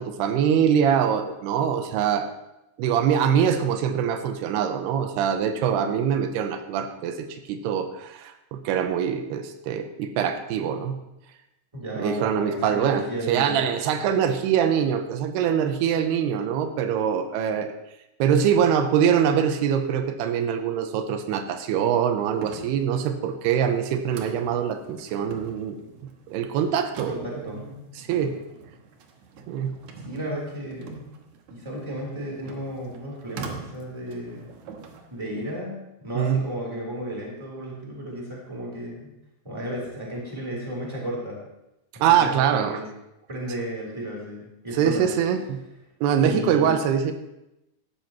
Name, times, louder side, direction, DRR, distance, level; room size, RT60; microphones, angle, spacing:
voice 1, 0.0-2.3 2.8-11.0 12.0-17.7 18.2-25.8 26.3-27.4 28.0-28.4 29.5-29.7 36.2-36.4 42.0-42.8 44.8-45.6 46.0-47.1, right 8 dB, 90° right, 8 dB, 2.8 m, -23 dB
voice 2, 11.7-13.6 27.1-27.6 28.2-28.3 30.0-31.0 31.5-34.5 35.1-39.1 39.4-41.4 42.2-42.9 43.3-45.1 46.1-46.7, equal, 5° right, -3 dB, 3.0 m, -34 dB
sound 1, 22.3-35.5, right 5 dB, 65° right, 1.9 m, -43 dB
16.0 x 12.0 x 3.0 m, 0.91 s
omnidirectional pair, 4.6 m